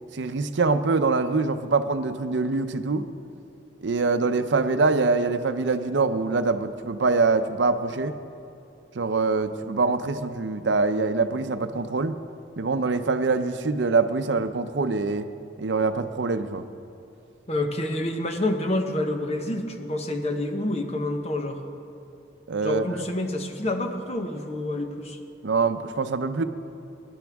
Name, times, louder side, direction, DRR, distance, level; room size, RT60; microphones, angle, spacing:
voice 1, 0.1-3.1 3.8-8.2 8.9-12.2 12.6-15.3 15.6-16.7 22.5-23.0 25.4-26.4, right 4 dB, 75° right, 10 dB, 0.6 m, -24 dB
voice 2, 17.5-21.6 22.6-25.2, left 1 dB, 35° left, 5 dB, 1.0 m, -28 dB
22.5 x 11.0 x 3.5 m, 2.8 s
head